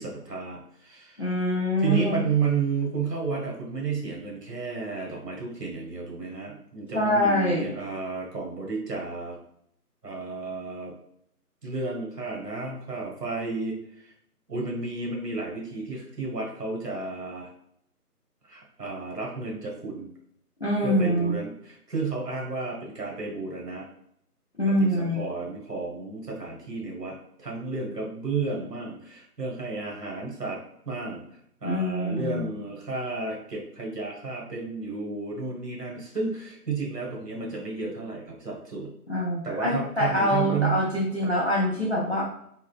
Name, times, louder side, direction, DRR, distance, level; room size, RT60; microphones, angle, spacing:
voice 1, 0.0-1.3 1.8-9.4 10.0-10.9 11.6-14.1 14.5-17.5 18.4-20.1 20.8-23.9 24.8-31.2 31.6-38.9 39.4-40.8, right 4 dB, 90° right, -1 dB, 1.4 m, -32 dB
voice 2, 1.2-2.1 6.9-7.7 20.6-21.4 24.6-25.2 31.6-32.5 39.1-42.2, left 1 dB, 45° left, -3 dB, 0.6 m, -25 dB
3.7 x 2.1 x 2.3 m, 0.70 s
figure-of-eight pair, 180°, 47 cm